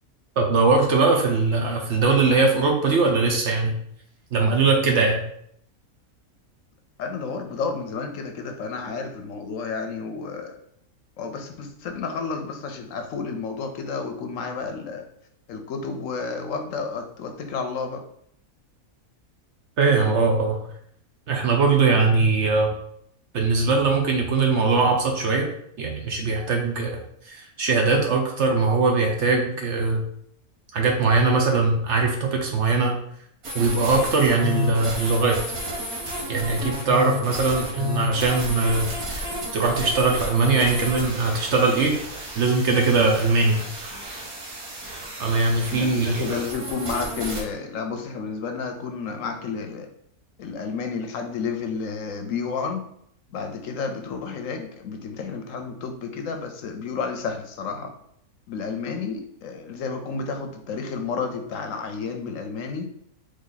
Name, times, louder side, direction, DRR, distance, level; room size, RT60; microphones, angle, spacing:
voice 1, 0.4-3.7 4.3-5.2 19.8-20.6 21.3-22.7 23.3-25.5 25.8-27.0 27.3-30.0 30.7-32.9 33.5-35.4 36.3-41.9 42.4-43.6 45.2-46.4, right 3 dB, 60° right, 1 dB, 0.9 m, -21 dB
voice 2, 7.0-10.6 11.2-15.0 15.5-18.0 45.7-49.9 50.4-52.8 53.3-57.9 58.5-62.9, left 5 dB, 70° left, 6 dB, 0.9 m, -31 dB
sound 1, 33.4-47.4, left 1 dB, 85° right, 1.6 m, -32 dB
4.2 x 3.2 x 3.9 m, 0.69 s
omnidirectional pair, 1.5 m